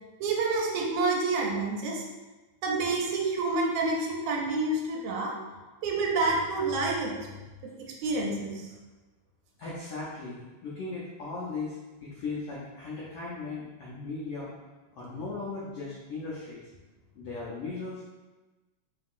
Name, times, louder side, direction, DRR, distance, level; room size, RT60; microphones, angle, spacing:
voice 1, 0.2-2.0 2.6-5.3 5.8-7.2 7.6-8.6, right 3 dB, 80° right, -1 dB, 1.9 m, -28 dB
voice 2, 9.6-14.5 14.9-16.7 17.1-18.1, left 3 dB, 90° left, -6 dB, 1.3 m, -37 dB
5.5 x 2.9 x 2.4 m, 1.2 s
omnidirectional pair, 3.5 m